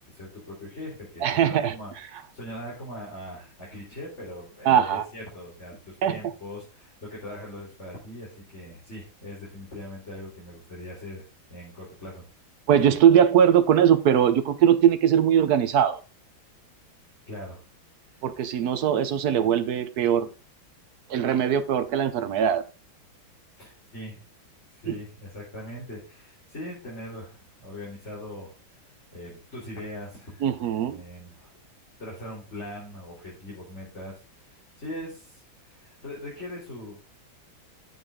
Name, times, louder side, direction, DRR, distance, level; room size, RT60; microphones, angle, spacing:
voice 1, 0.0-11.2 11.5-12.2 17.3-17.6 18.1-18.3 23.6-24.2 24.7-28.5 29.1-30.5 30.9-31.6 32.0-36.9, left 1 dB, 35° left, -5 dB, 3.9 m, -41 dB
voice 2, 1.2-1.7 4.7-5.0 6.0-6.2 12.7-16.0 18.2-20.3 21.1-22.6 24.9-25.0 30.4-31.0, right 9 dB, 65° right, 12 dB, 1.1 m, -21 dB
9.7 x 7.1 x 3.6 m, 0.32 s
omnidirectional pair, 2.2 m